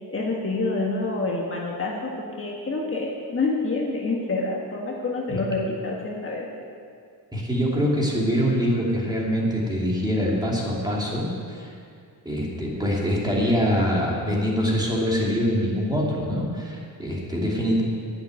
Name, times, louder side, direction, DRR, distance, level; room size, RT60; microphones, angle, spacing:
voice 1, 0.1-6.5, left 3 dB, 30° left, -2 dB, 1.6 m, -27 dB
voice 2, 7.3-11.8 12.2-17.8, equal, 10° right, -4 dB, 2.6 m, -24 dB
10.5 x 8.3 x 9.5 m, 2.3 s
wide cardioid pair, 145°, 40 cm